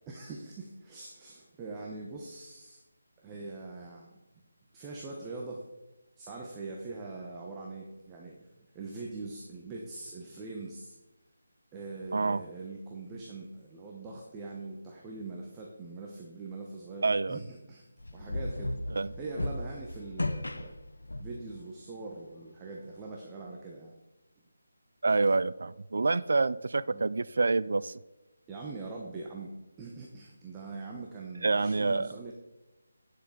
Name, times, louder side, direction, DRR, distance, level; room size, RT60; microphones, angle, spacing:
voice 1, 0.1-2.8 3.2-4.2 4.7-5.7 6.2-8.5 8.7-10.9 11.7-17.8 18.1-18.7 19.2-20.7 21.2-23.9 26.9-27.1 28.5-29.5 29.8-32.3, right 3 dB, 15° right, -2 dB, 0.9 m, -42 dB
voice 2, 17.0-17.4 18.9-19.1 25.0-28.0 31.4-32.1, right 3 dB, 65° right, 16 dB, 0.3 m, -27 dB
sound 1, 18.0-21.5, left 1 dB, 85° left, 0.7 m, -35 dB
9.5 x 6.6 x 3.8 m, 1.0 s
figure-of-eight pair, 160°, 0 cm